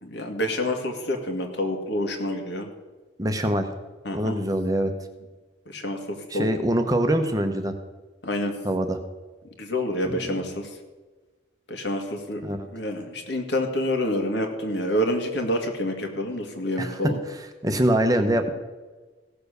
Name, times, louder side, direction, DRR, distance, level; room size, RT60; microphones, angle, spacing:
voice 1, 0.0-2.7 4.0-4.4 5.7-6.5 8.2-8.5 9.6-10.7 11.7-17.2, left 1 dB, 65° left, 4 dB, 2.0 m, -28 dB
voice 2, 3.2-3.7 4.1-4.9 6.3-7.7 8.6-9.0 10.0-10.4 12.4-12.7 16.8-17.0 17.3-18.5, right 1 dB, 20° right, 6 dB, 0.9 m, -24 dB
16.5 x 6.9 x 6.7 m, 1.3 s
head